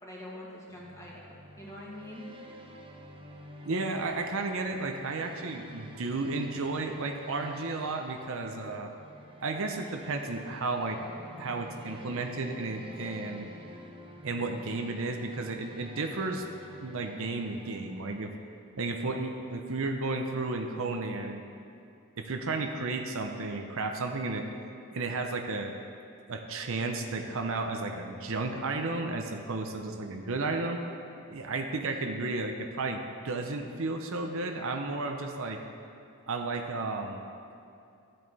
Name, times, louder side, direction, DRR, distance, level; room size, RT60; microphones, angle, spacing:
voice 1, 0.0-2.3, left 1 dB, 15° left, -5 dB, 1.8 m, -44 dB
sound 1, 0.7-18.4, equal, 25° right, 0.8 m, -49 dB
voice 2, 3.7-8.9 9.4-11.0 11.4-13.5 14.2-16.5 16.8-18.3 18.8-21.4 22.2-24.5 24.9-25.7 26.3-30.8 31.3-35.6 36.3-37.2, right 3 dB, 65° right, 4 dB, 0.7 m, -33 dB
13.5 x 7.6 x 4.1 m, 2.6 s
head